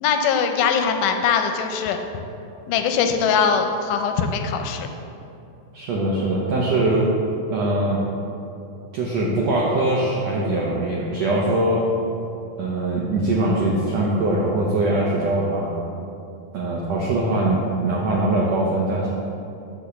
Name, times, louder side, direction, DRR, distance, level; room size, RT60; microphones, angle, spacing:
voice 1, 0.0-2.0 2.7-4.9, left 6 dB, 80° left, 6 dB, 1.9 m, -21 dB
voice 2, 5.7-7.1 7.5-8.1 8.9-11.9 12.6-15.7 16.5-19.1, right 2 dB, 75° right, -4 dB, 1.5 m, -22 dB
10.0 x 3.5 x 6.9 m, 2.7 s
omnidirectional pair, 4.1 m